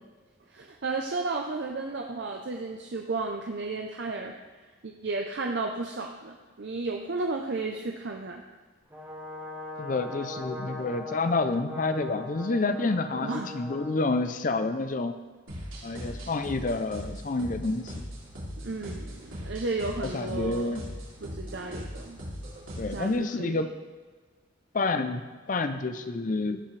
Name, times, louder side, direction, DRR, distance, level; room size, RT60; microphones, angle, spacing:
voice 1, 0.5-4.4 4.8-8.4 13.2-13.5 18.6-20.8 21.2-22.2 22.9-23.6, right 3 dB, 60° right, 2 dB, 0.6 m, -33 dB
Brass instrument, 8.9-14.1, left 1 dB, 15° right, 2.9 m, -40 dB
voice 2, 9.8-15.1 15.8-18.0 18.9-19.0 20.0-20.9 22.8-23.7 24.7-26.6, left 3 dB, 40° left, 9 dB, 0.5 m, -29 dB
sound 1, 15.5-23.1, equal, 90° right, 3.0 m, -39 dB
17.0 x 5.8 x 3.3 m, 1.4 s
head